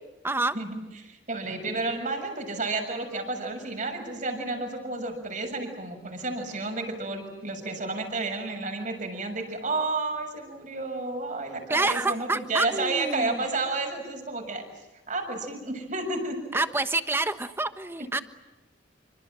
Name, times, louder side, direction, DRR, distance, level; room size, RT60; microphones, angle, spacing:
voice 1, 0.2-0.5 11.7-13.4 16.5-18.2, right 2 dB, 15° right, 10 dB, 1.2 m, -27 dB
voice 2, 1.0-14.6 15.1-16.4, right 3 dB, 45° right, 4 dB, 7.0 m, -31 dB
27.5 x 25.5 x 7.6 m, 1.1 s
head